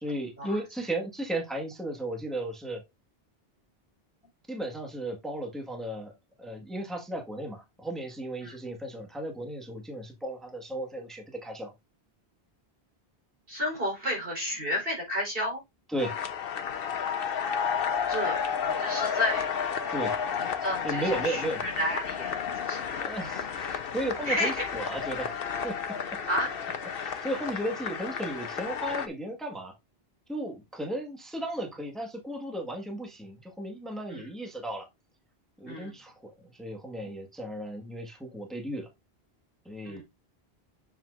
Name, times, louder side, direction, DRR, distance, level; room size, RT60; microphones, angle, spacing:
voice 1, 0.0-2.8 4.5-6.1 6.4-11.7 15.9-16.1 19.9-20.1 20.8-21.6 22.9-25.3 25.6-26.2 27.0-29.7 30.3-34.9 35.6-38.9 39.6-40.0, right 1 dB, ahead, 2 dB, 1.6 m, -35 dB
voice 2, 13.5-15.6 18.1-19.5 20.4-22.9 24.2-24.6 26.3-26.5 34.1-34.3 35.7-35.9 39.8-40.0, equal, 65° right, -1 dB, 4.3 m, -32 dB
sound 1, 16.0-29.1, left 7 dB, 65° left, 1.0 m, -32 dB
7.5 x 7.3 x 2.5 m, 0.21 s
omnidirectional pair, 1.0 m